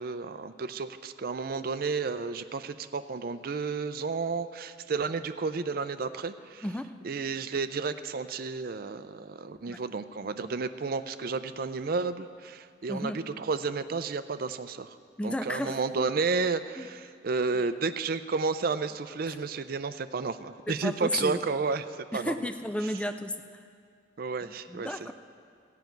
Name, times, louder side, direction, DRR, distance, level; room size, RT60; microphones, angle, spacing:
voice 1, 0.0-6.6 7.0-13.1 13.4-15.0 15.2-21.9 22.1-22.3 24.2-25.1, right 4 dB, 50° right, 12 dB, 0.5 m, -32 dB
voice 2, 6.6-6.9 9.7-9.8 12.9-13.2 15.2-15.8 16.8-16.9 17.5-17.7 19.3-19.4 20.7-21.4 22.1-23.6 24.4-25.1, left 1 dB, 5° left, 8 dB, 0.4 m, -33 dB
14.5 x 5.8 x 9.2 m, 2.2 s
head